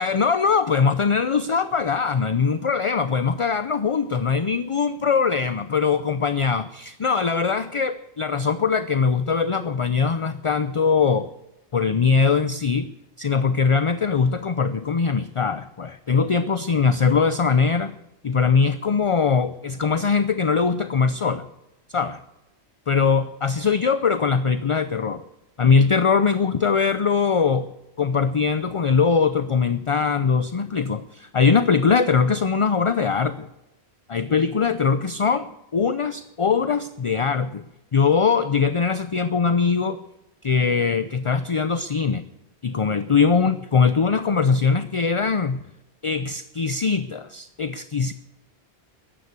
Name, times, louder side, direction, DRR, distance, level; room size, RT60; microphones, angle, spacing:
voice 1, 0.0-11.3 11.7-12.9 13.2-18.0 18.2-21.5 21.9-22.2 22.9-25.2 25.6-27.7 28.0-33.5 34.1-37.6 37.9-40.0 40.4-42.2 42.6-45.6 46.0-48.1, left 5 dB, 40° left, 12 dB, 0.5 m, -21 dB
14.0 x 11.0 x 8.2 m, 0.92 s
omnidirectional pair, 1.1 m